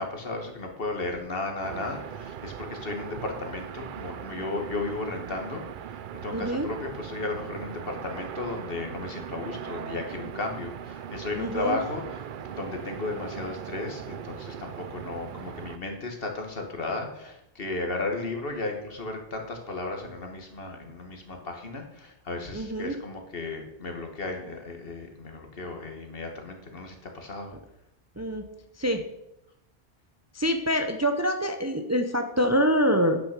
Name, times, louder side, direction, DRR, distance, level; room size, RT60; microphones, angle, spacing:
voice 1, 0.0-27.5, left 2 dB, 60° left, 3 dB, 1.8 m, -34 dB
sound 1, 1.6-15.8, right 9 dB, 60° right, 0.6 m, -39 dB
voice 2, 6.3-6.7 11.4-11.8 22.5-23.0 28.2-28.5 28.8-29.0 30.3-33.2, equal, 20° right, 6 dB, 0.6 m, -25 dB
9.4 x 6.2 x 6.6 m, 0.86 s
omnidirectional pair, 1.1 m